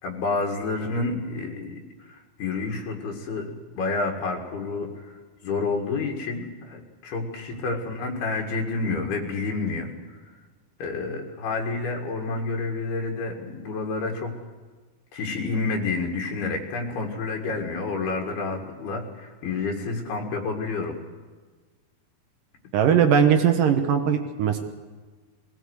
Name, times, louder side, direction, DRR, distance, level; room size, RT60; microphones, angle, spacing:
voice 1, 0.0-5.1 5.4-9.9 10.8-14.4 15.1-21.0, left 3 dB, 85° left, 1 dB, 3.9 m, -29 dB
voice 2, 22.7-24.6, right 8 dB, 70° right, 6 dB, 2.5 m, -19 dB
21.5 x 17.5 x 8.1 m, 1.4 s
omnidirectional pair, 4.4 m